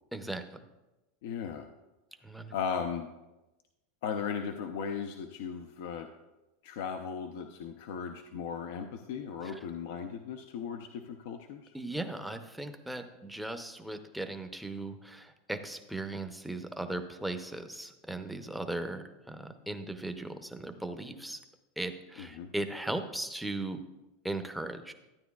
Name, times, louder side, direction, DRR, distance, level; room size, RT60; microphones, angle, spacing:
voice 1, 0.1-0.6 2.2-2.5 9.4-9.6 11.7-21.4 21.8-23.8 24.2-24.9, right 2 dB, ahead, 7 dB, 0.7 m, -38 dB
voice 2, 1.2-1.7 2.5-3.1 4.0-6.1 6.6-11.7 22.2-22.5, left 7 dB, 70° left, 5 dB, 0.5 m, -37 dB
12.5 x 9.2 x 2.3 m, 1.0 s
supercardioid pair, 130°, 0 cm